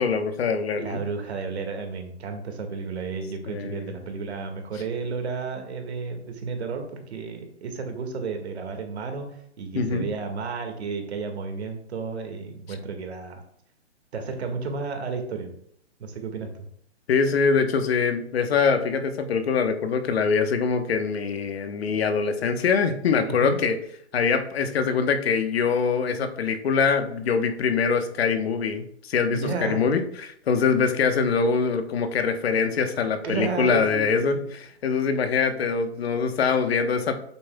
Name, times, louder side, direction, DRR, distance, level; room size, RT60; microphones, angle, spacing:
voice 1, 0.0-1.0 3.5-3.9 9.7-10.0 12.7-12.8 17.1-23.8 24.1-37.2, left 5 dB, 60° left, 8 dB, 1.1 m, -24 dB
voice 2, 0.8-13.4 14.1-15.5 16.0-16.5 23.3-23.6 29.3-29.9 33.2-34.5, right 4 dB, 65° right, 5 dB, 1.9 m, -32 dB
8.2 x 7.5 x 2.3 m, 0.67 s
hypercardioid pair, 145°, 36 cm